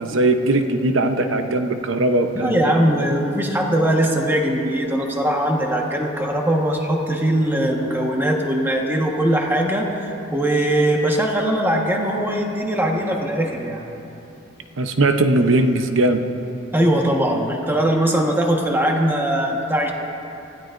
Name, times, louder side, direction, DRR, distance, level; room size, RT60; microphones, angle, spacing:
voice 1, 0.0-2.7 14.8-16.2, right 2 dB, 75° right, 6 dB, 0.8 m, -19 dB
voice 2, 2.3-13.8 16.7-19.9, right 1 dB, 10° right, 0 dB, 1.4 m, -20 dB
26.0 x 16.0 x 2.6 m, 3.0 s
head